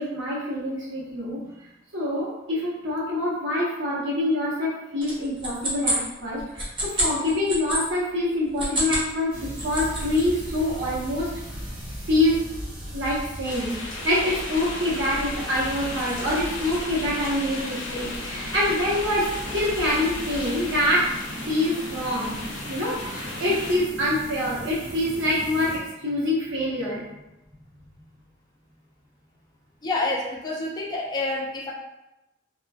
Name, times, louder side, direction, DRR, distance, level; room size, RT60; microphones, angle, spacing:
voice 1, 0.0-1.5 1.9-11.3 12.1-12.4 12.9-13.8 14.0-21.1 21.5-22.4 22.7-27.0, left 1 dB, 75° right, -7 dB, 0.9 m, -25 dB
sound 1, 5.0-7.8 8.4-9.1 9.4-10.2, equal, 25° right, 0.6 m, -28 dB
sound 2, 9.3-25.8, equal, 55° right, 1.3 m, -37 dB
sound 3, 13.4-23.8, left 2 dB, 80° left, 0.5 m, -35 dB
voice 2, 29.8-31.7, left 2 dB, 20° left, -3 dB, 0.4 m, -28 dB
2.3 x 2.3 x 2.3 m, 0.93 s
head